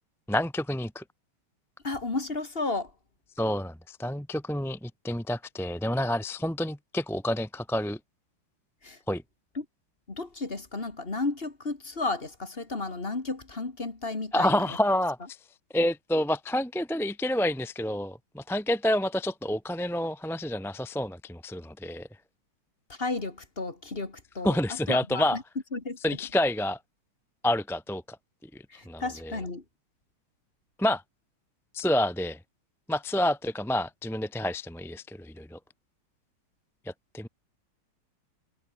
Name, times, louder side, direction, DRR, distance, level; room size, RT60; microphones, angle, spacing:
voice 1, 0.3-1.0 3.4-8.0 9.1-9.2 14.3-15.4 15.7-22.1 24.4-25.4 26.0-26.8 27.4-28.2 28.4-29.3 30.8-31.0 31.7-32.4 32.9-35.6 36.8-37.3, left 1 dB, ahead, 0.8 m, -28 dB
voice 2, 1.8-2.9 8.8-9.0 9.5-9.7 10.1-14.7 22.9-25.4 25.7-26.2 28.7-29.6, left 3 dB, 25° left, 2.5 m, -33 dB
omnidirectional pair, 2.4 m